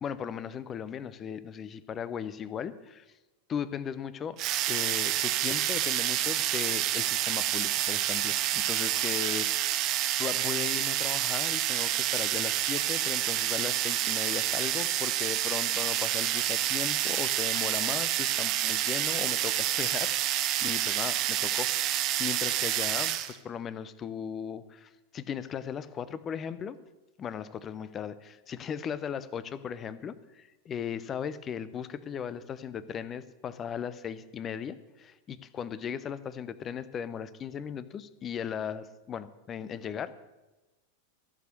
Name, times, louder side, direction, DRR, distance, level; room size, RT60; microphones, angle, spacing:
voice 1, 0.0-3.0 3.5-4.4 4.7-9.9 10.2-26.8 27.2-40.1, left 8 dB, 25° left, 16 dB, 0.6 m, -37 dB
sound 1, 4.4-23.3, right 12 dB, 35° right, 0.8 m, -28 dB
15.0 x 6.3 x 6.6 m, 1.1 s
figure-of-eight pair, 90°, 0 cm